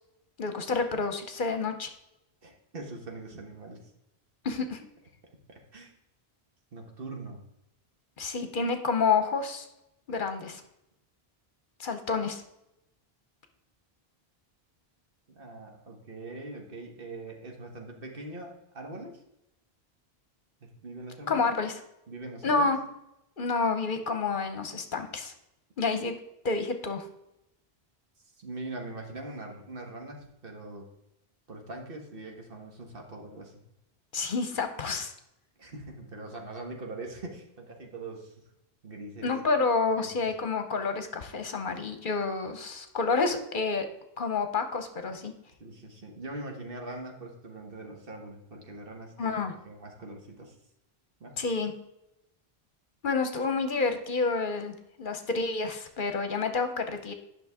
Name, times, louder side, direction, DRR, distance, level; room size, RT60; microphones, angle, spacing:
voice 1, 0.4-1.9 4.4-4.8 8.2-9.7 10.1-10.6 11.8-12.4 21.3-21.8 22.4-22.8 23.4-25.3 25.8-26.2 26.4-27.1 34.1-35.1 39.2-43.9 44.2-45.3 49.2-49.5 51.4-51.7 53.0-57.1, left 4 dB, 55° left, 7 dB, 1.0 m, -29 dB
voice 2, 2.4-3.8 5.5-5.9 6.7-7.4 15.3-19.2 20.6-21.4 22.1-22.7 28.4-30.8 31.5-33.5 35.6-38.3 38.8-39.3 40.0-40.1 45.6-50.5 51.2-51.4, right 2 dB, 65° right, 1 dB, 1.6 m, -42 dB
10.5 x 6.0 x 3.6 m, 0.85 s
omnidirectional pair, 1.0 m